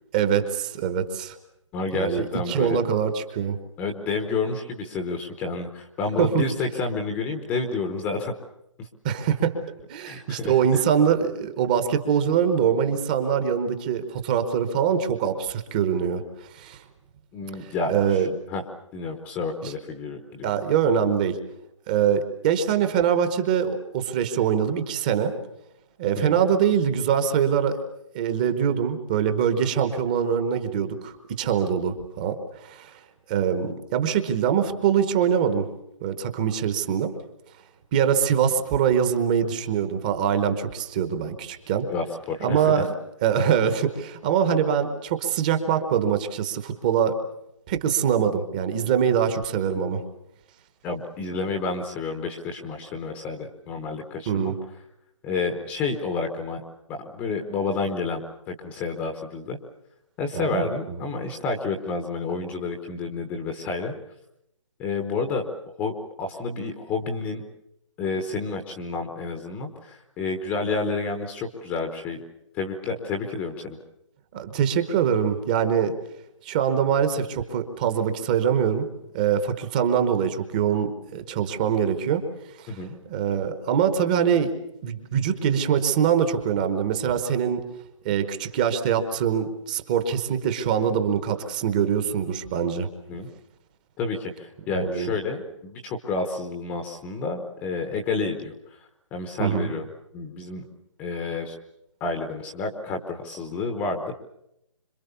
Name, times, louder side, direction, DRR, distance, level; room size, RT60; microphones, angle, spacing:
voice 1, 0.1-1.4 1.9-3.6 6.2-6.4 9.0-9.6 9.9-16.2 16.5-16.8 17.6-18.3 19.6-19.7 20.4-21.4 21.9-25.3 26.0-27.8 28.1-32.9 33.3-35.7 36.0-37.1 37.9-41.9 42.4-42.9 43.2-47.2 47.7-50.0 54.3-54.6 60.3-60.6 60.9-61.1 74.3-75.9 76.4-78.9 79.1-82.2 82.6-82.8 83.1-84.5 84.8-87.6 88.0-92.9 94.7-95.1 99.4-99.7, right 8 dB, 15° right, 8 dB, 1.0 m, -23 dB
voice 2, 1.7-2.8 3.8-8.3 8.8-8.9 10.0-10.8 17.3-18.2 18.5-18.6 18.9-20.5 26.2-26.4 41.9-42.9 50.8-54.5 55.2-56.6 56.9-58.2 58.5-59.6 60.2-63.9 64.8-65.5 65.8-67.4 68.0-72.2 72.5-73.8 82.7-83.0 93.1-93.3 94.0-98.8 99.1-99.9 100.1-100.6 101.0-101.6 102.0-104.1, left 3 dB, 10° left, 4 dB, 0.9 m, -30 dB
26.0 x 23.5 x 6.9 m, 0.81 s
hypercardioid pair, 175°, 16 cm